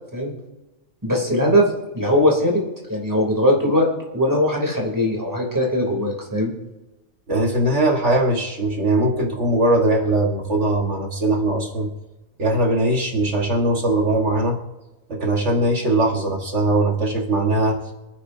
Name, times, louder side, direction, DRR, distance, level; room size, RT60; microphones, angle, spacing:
voice 1, 1.0-1.7 1.9-2.6 2.9-3.9 4.1-6.5, left 1 dB, 15° right, -2 dB, 3.3 m, -20 dB
voice 2, 7.3-11.9 12.4-14.6 15.1-17.8, right 1 dB, 60° right, 0 dB, 1.9 m, -20 dB
26.0 x 9.6 x 2.8 m, 1.1 s
omnidirectional pair, 1.4 m